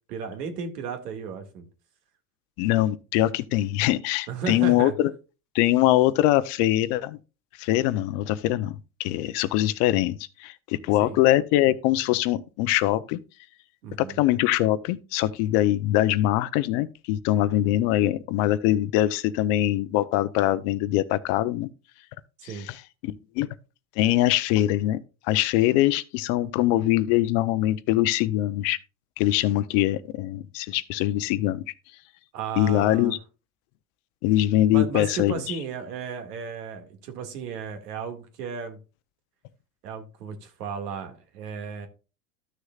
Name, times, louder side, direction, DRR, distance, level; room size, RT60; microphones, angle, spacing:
voice 1, 0.1-1.7 4.3-5.0 11.0-11.2 13.8-14.2 22.4-22.7 32.3-33.1 34.7-38.8 39.8-41.9, right 6 dB, 90° right, 2.1 m, -34 dB
voice 2, 2.6-5.1 5.5-7.2 7.6-13.2 14.0-21.7 22.5-23.5 24.0-25.0 25.3-28.8 29.2-31.6 32.6-33.2 34.2-35.6, left 14 dB, 50° left, 0.7 m, -23 dB
13.5 x 6.5 x 2.4 m
supercardioid pair, 135°, 46 cm